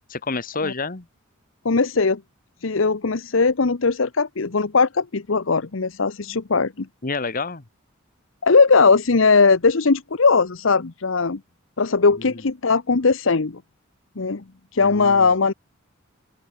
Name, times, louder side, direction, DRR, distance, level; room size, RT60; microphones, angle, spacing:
voice 1, 0.1-1.0 7.0-7.6 12.2-12.4 14.8-15.3, left 3 dB, 45° left, 1.4 m, -29 dB
voice 2, 1.6-2.2 2.6-6.9 8.4-11.4 11.8-13.6 14.2-14.4 14.7-15.5, left 4 dB, 65° left, 0.9 m, -19 dB
open air
head